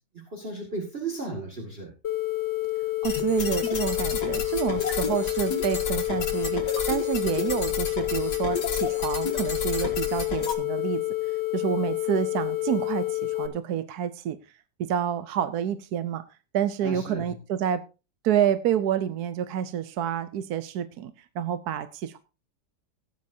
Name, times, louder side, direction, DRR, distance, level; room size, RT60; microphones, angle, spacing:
voice 1, 0.1-1.9 16.8-17.3, right 2 dB, 35° right, 0 dB, 2.4 m, -35 dB
sound 1, 2.0-13.5, left 17 dB, 85° left, 2.1 m, -29 dB
sound 2, 3.0-10.5, left 4 dB, 70° left, 2.2 m, -32 dB
voice 2, 3.0-11.0 11.5-14.4 14.8-16.2 16.5-17.8 18.2-22.2, right 9 dB, 65° right, 12 dB, 1.1 m, -28 dB
16.5 x 9.6 x 2.7 m, 0.31 s
omnidirectional pair, 1.9 m